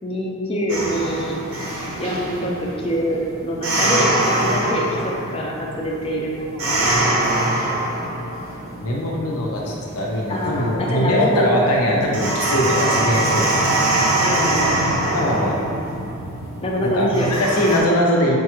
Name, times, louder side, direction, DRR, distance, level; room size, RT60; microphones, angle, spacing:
voice 1, 0.0-1.4 2.0-6.8 7.2-7.3 10.3-11.6 14.2-14.7 16.6-17.3, equal, 25° left, -2 dB, 0.4 m, -25 dB
sound 1, 0.7-17.8, right 1 dB, 80° right, 0.7 m, -24 dB
voice 2, 8.8-13.8 15.1-15.6 15.9-16.5 16.8-18.3, left 1 dB, 85° left, -2 dB, 0.7 m, -21 dB
5.1 x 2.3 x 2.9 m, 2.3 s
head